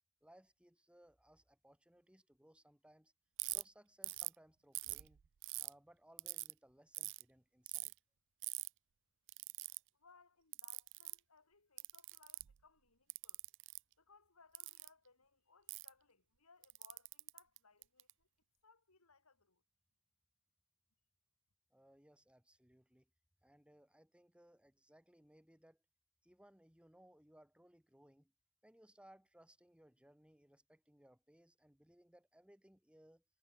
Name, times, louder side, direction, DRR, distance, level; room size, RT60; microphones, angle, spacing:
voice 1, 0.2-3.1 3.5-5.2 5.6-7.9 21.7-23.1 23.4-25.8 26.2-28.3 28.6-33.2, right 1 dB, 5° right, 2.4 m, -66 dB
Ratchet pawl, 3.4-3.6 4.0-4.4 4.8-5.7 6.2-6.5 6.9-7.2 7.7-7.9 8.4-8.7 9.3-9.8 10.5-11.2 11.8-12.6 13.1-13.8 14.5-14.9 15.7-15.9 16.6-18.1, right 22 dB, 60° right, 0.4 m, -43 dB
voice 2, 9.9-13.4 14.0-18.3 18.6-19.6, left 4 dB, 80° left, 3.7 m, -68 dB
head